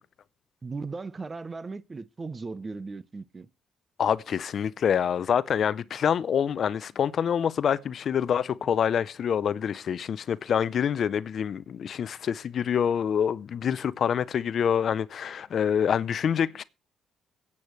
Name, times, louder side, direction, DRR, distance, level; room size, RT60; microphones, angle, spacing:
voice 1, 0.6-3.5, right 4 dB, 30° right, 0.6 m, -37 dB
voice 2, 4.0-16.6, left 8 dB, 60° left, 0.5 m, -26 dB
22.5 x 8.4 x 3.1 m
cardioid pair, 90°, 0 cm